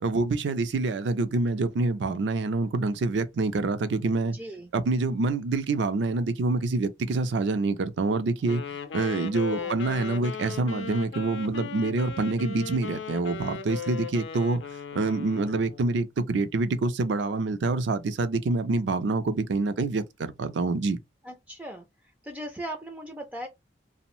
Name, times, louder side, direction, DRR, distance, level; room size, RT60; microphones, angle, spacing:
voice 1, 0.0-4.4 4.7-8.6 8.9-14.6 14.9-21.0, right 3 dB, 75° right, 0.4 m, -26 dB
voice 2, 4.3-4.7 9.5-9.7 21.2-21.8 22.2-23.5, right 1 dB, 10° right, 0.4 m, -38 dB
Wind instrument woodwind instrument, 8.5-15.9, left 5 dB, 90° left, 0.5 m, -37 dB
2.6 x 2.0 x 2.9 m
head